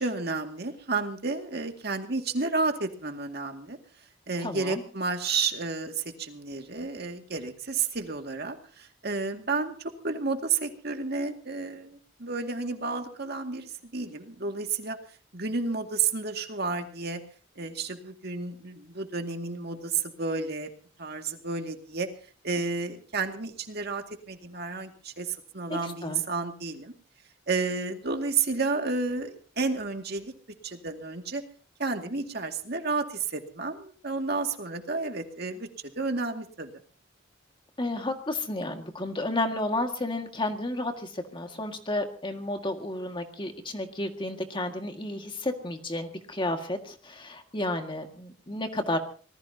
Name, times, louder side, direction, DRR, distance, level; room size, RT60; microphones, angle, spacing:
voice 1, 0.0-3.8 4.3-15.0 15.3-17.2 17.6-20.7 21.0-22.1 22.4-26.9 27.5-30.3 30.6-31.4 31.8-35.7 36.0-36.7, right 4 dB, 55° right, 4 dB, 2.2 m, -31 dB
voice 2, 4.4-4.8 25.7-26.2 37.8-49.0, left 1 dB, 25° left, 5 dB, 1.9 m, -32 dB
26.0 x 19.5 x 2.9 m, 0.40 s
head